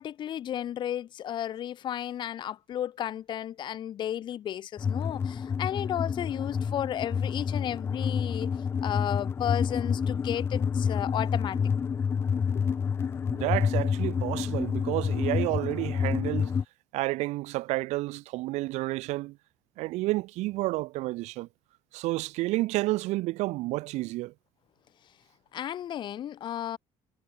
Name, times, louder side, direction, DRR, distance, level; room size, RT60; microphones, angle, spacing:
voice 1, 0.0-8.5 8.8-11.6 25.5-26.8, left 10 dB, 45° left, 1.0 m, -33 dB
sound 1, 4.8-16.6, left 6 dB, 20° left, 0.3 m, -28 dB
voice 2, 13.3-16.5 16.9-19.4 19.8-21.5 21.9-24.3, right 19 dB, 85° right, 1.9 m, -30 dB
cardioid pair, 160°, 11 cm